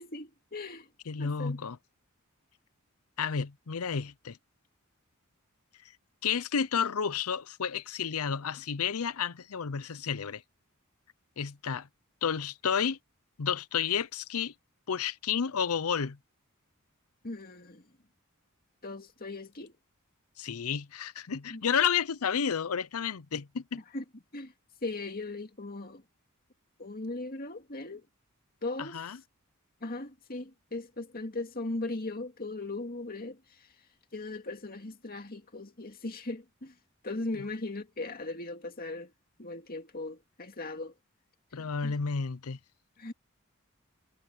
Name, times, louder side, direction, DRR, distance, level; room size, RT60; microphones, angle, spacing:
voice 1, 0.0-0.9 1.2-1.6 17.2-17.8 18.8-19.7 21.5-21.7 23.9-24.0 24.3-24.5 24.8-26.0 26.8-28.1 28.6-29.0 29.8-33.7 34.1-36.7 37.0-39.1 39.4-40.9 41.5-42.0 43.0-43.1, left 2 dB, 45° left, 2.3 m, -38 dB
voice 2, 1.1-1.8 3.2-4.4 6.2-10.4 11.4-11.9 12.2-13.0 13.4-14.5 14.9-16.2 20.4-23.8 28.8-29.2 41.5-42.6, left 7 dB, 85° left, 0.7 m, -31 dB
head